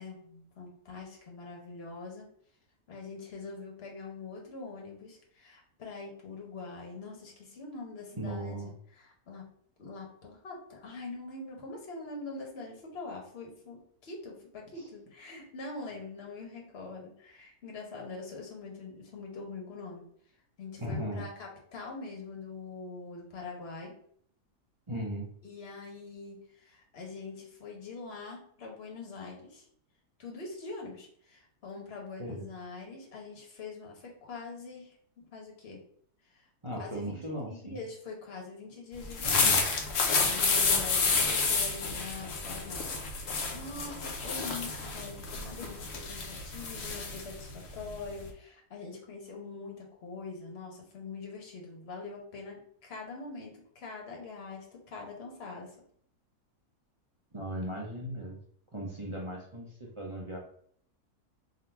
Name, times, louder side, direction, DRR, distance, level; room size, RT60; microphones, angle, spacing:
voice 1, 0.0-2.3 2.9-8.6 9.0-9.4 9.8-20.0 20.6-23.9 25.4-29.7 30.2-35.8 36.3-36.5 36.7-37.2 37.5-42.8 43.5-55.7, left 3 dB, 45° left, 0 dB, 1.2 m, -44 dB
voice 2, 8.1-8.8 14.7-14.9 20.8-21.2 24.9-25.3 32.2-32.4 36.6-37.8 39.2-39.6 57.3-58.4 58.7-60.4, right 1 dB, 30° right, -3 dB, 0.6 m, -37 dB
sound 1, 39.0-48.3, left 4 dB, 60° left, 1.1 m, -30 dB
3.8 x 2.7 x 4.4 m, 0.63 s
omnidirectional pair, 1.6 m